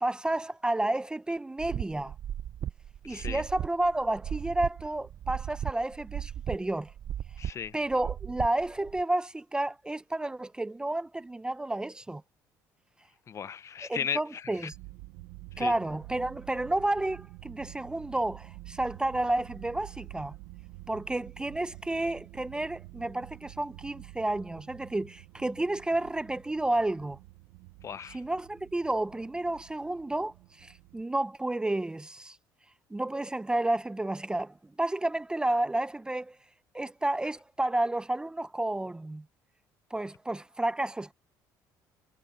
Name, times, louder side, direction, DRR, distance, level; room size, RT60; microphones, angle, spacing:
voice 1, 0.0-2.1 3.0-6.9 7.7-12.2 13.8-14.8 15.6-20.3 20.9-27.2 28.1-32.4 32.9-36.4 36.7-39.2 39.9-41.1, right 2 dB, 10° right, 0.6 m, -31 dB
sound 1, 1.6-9.0, right 10 dB, 50° right, 0.6 m, -37 dB
voice 2, 3.1-3.4 7.4-7.7 13.3-14.2 15.6-15.7 27.8-28.2, left 8 dB, 40° left, 0.9 m, -35 dB
sound 2, 14.7-31.0, right 19 dB, 90° right, 0.9 m, -49 dB
cardioid pair, 95°, 8 cm